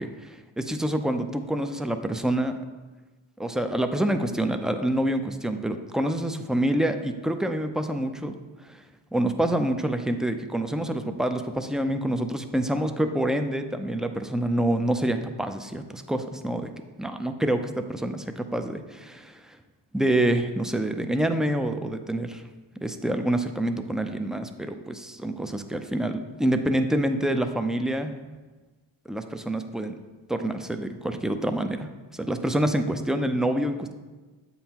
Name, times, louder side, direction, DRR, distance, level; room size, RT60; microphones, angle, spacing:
voice 1, 0.0-2.6 3.4-8.3 8.6-8.8 9.1-16.7 17.0-19.6 19.9-22.4 22.8-28.1 29.1-30.0 30.3-31.9 32.2-33.9, right 1 dB, ahead, 7 dB, 0.5 m, -27 dB
7.7 x 5.6 x 3.0 m, 1.3 s
supercardioid pair, 40°, 49 cm